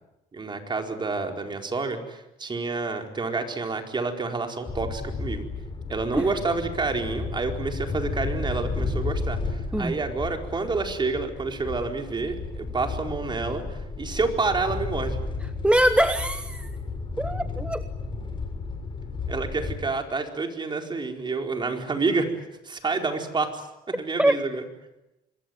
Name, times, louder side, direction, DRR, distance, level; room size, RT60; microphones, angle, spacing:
voice 1, 0.3-5.4 5.9-15.2 19.3-22.3 22.6-24.6, right 3 dB, 25° right, 4 dB, 4.5 m, -29 dB
sound 1, 4.7-19.8, left 4 dB, 30° left, 6.8 m, -33 dB
voice 2, 15.6-16.7 17.2-17.8 24.2-24.3, right 1 dB, 5° right, 10 dB, 1.0 m, -22 dB
26.0 x 21.5 x 9.2 m, 0.92 s
cardioid pair, 110°, 17 cm